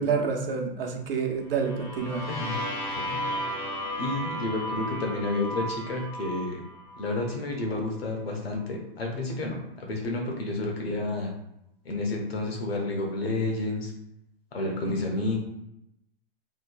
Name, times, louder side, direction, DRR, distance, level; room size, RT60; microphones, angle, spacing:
voice 1, 0.0-2.2, right 5 dB, 65° right, 3 dB, 0.7 m, -28 dB
sound 1, 1.5-7.3, equal, 10° left, 0.4 m, -34 dB
voice 2, 2.3-2.6 3.1-3.2 4.0-6.6 7.0-11.3 11.8-13.9 14.5-15.4, left 2 dB, 90° left, 1 dB, 1.0 m, -30 dB
3.0 x 2.6 x 2.3 m, 0.82 s
hypercardioid pair, 145°, 30 cm